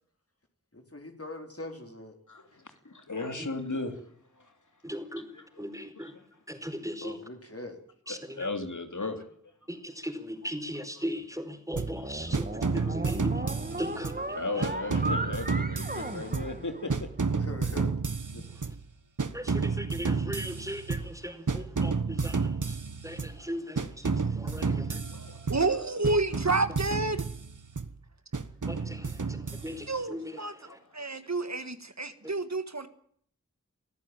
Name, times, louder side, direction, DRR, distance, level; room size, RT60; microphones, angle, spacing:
voice 1, 0.7-2.2 7.0-7.8 17.3-18.2, left 2 dB, 50° left, 4.3 m, -42 dB
voice 2, 2.3-4.0 4.4-4.5 5.3-5.4 8.1-9.3 12.8-13.2 14.3-17.1 18.3-18.4 21.5-21.6 22.2-22.3 23.8-23.9 24.4-25.5 28.9-29.0 29.4-29.7 30.6-31.2, left 3 dB, 75° left, 2.8 m, -37 dB
voice 3, 4.8-7.2 8.1-8.5 9.7-14.7 18.4-18.8 19.3-22.8 23.0-25.0 28.7-30.8 32.2-32.3, equal, 10° right, 4.7 m, -39 dB
sound 1, 11.7-17.2, right 2 dB, 30° right, 1.7 m, -37 dB
sound 2, 11.8-12.0 12.3-14.3 14.6-16.6 16.9-18.8 19.2-21.2 21.5-23.4 23.8-25.8 26.0-27.9 28.3-30.0, right 4 dB, 80° right, 1.3 m, -31 dB
voice 4, 25.5-27.3 29.9-30.5 30.9-32.9, right 3 dB, 60° right, 1.8 m, -29 dB
23.5 x 14.0 x 9.1 m
wide cardioid pair, 40°, 30 cm